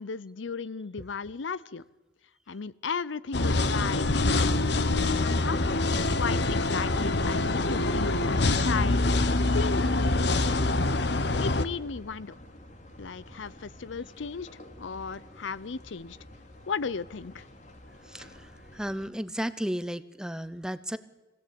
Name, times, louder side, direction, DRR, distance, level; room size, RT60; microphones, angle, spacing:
voice 1, 0.0-1.8 2.5-4.6 5.0-5.6 5.9-9.0 9.5-10.6 11.4-12.3 13.0-14.5 14.8-16.2 16.7-17.5, left 5 dB, 85° left, 18 dB, 0.6 m, -35 dB
sound 1, 3.3-11.6, left 2 dB, 65° left, 1.1 m, -25 dB
sound 2, 9.6-19.1, left 1 dB, 40° left, 2.6 m, -49 dB
voice 2, 18.0-21.0, equal, 5° right, 14 dB, 0.8 m, -34 dB
23.0 x 17.0 x 8.7 m, 1.1 s
head